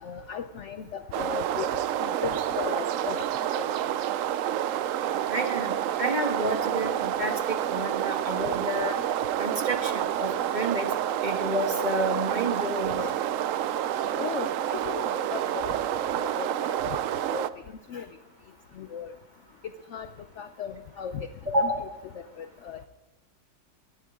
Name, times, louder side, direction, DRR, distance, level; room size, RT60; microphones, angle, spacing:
voice 1, 0.0-3.3 3.6-3.7 12.6-12.7 13.0-13.2 14.2-15.8 16.1-17.0 17.3-17.5 17.9-18.1 18.8-19.1 19.9-20.1 20.4-21.3 21.6-21.9 22.4-22.8, left 7 dB, 65° left, 9 dB, 0.7 m, -37 dB
sound 1, 1.1-17.5, right 11 dB, 90° right, 0.7 m, -29 dB
voice 2, 5.3-7.4 7.7-9.0 9.4-10.9 11.2-13.0 21.5-21.9, right 1 dB, 25° right, 3 dB, 1.4 m, -29 dB
19.0 x 12.5 x 3.6 m, 1.0 s
omnidirectional pair, 2.0 m